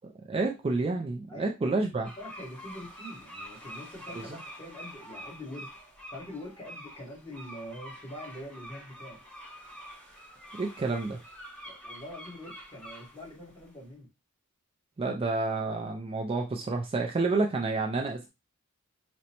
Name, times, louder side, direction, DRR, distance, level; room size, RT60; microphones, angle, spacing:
voice 1, 0.3-2.1 4.2-4.3 10.6-11.2 15.0-18.3, right 3 dB, 25° right, 2 dB, 0.3 m, -29 dB
voice 2, 1.3-5.7 6.1-9.2 11.6-14.1, left 1 dB, 20° left, -3 dB, 1.4 m, -44 dB
sound 1, 2.0-13.7, equal, 5° left, 0.9 m, -46 dB
5.0 x 2.1 x 2.8 m, 0.25 s
head